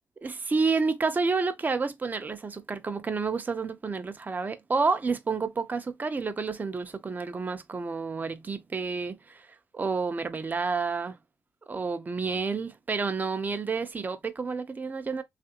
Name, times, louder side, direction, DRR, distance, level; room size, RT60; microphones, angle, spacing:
voice 1, 0.2-9.5 9.7-11.2 11.7-15.2, right 4 dB, 30° right, 0.5 m, -29 dB
3.2 x 2.5 x 2.8 m
cardioid pair, 75°, 6 cm